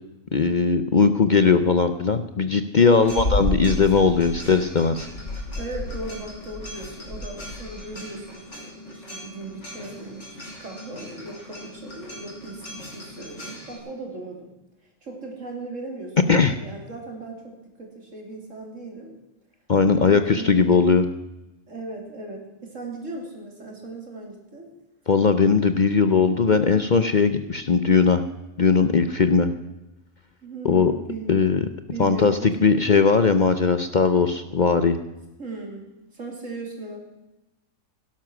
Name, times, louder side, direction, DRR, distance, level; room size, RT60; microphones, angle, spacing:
voice 1, 0.3-5.1 16.3-16.6 19.7-21.1 25.1-28.2 28.6-29.5 30.6-30.9 31.3-31.6 32.0-35.0, left 5 dB, 45° left, 10 dB, 0.7 m, -19 dB
sound 1, 2.8-13.8, left 1 dB, 60° left, 5.5 m, -34 dB
voice 2, 2.8-3.3 5.6-14.5 15.0-19.1 19.9-20.8 21.7-24.7 30.4-31.4 31.9-33.0 35.4-37.0, right 3 dB, 70° right, 1 dB, 3.5 m, -37 dB
17.0 x 11.5 x 6.1 m, 0.99 s
omnidirectional pair, 1.4 m